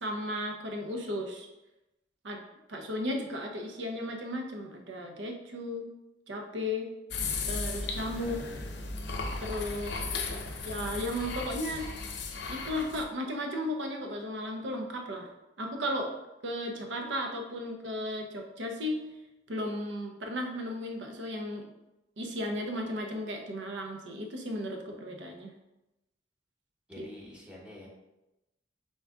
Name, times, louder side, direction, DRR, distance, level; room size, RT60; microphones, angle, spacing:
voice 1, 0.0-1.5 2.2-2.4 2.7-5.9 6.3-6.9 7.5-8.4 9.4-10.1 10.6-11.9 12.5-15.3 15.6-16.1 16.4-19.0 19.5-21.7 22.2-25.5 27.0-27.1, left 1 dB, 75° right, 3 dB, 0.7 m, -35 dB
sound 1, 7.1-13.0, left 3 dB, 65° left, 0.6 m, -36 dB
voice 2, 8.2-8.8 9.9-10.8 26.9-27.9, left 1 dB, 5° right, -4 dB, 1.0 m, -49 dB
3.9 x 3.6 x 3.5 m, 0.95 s
head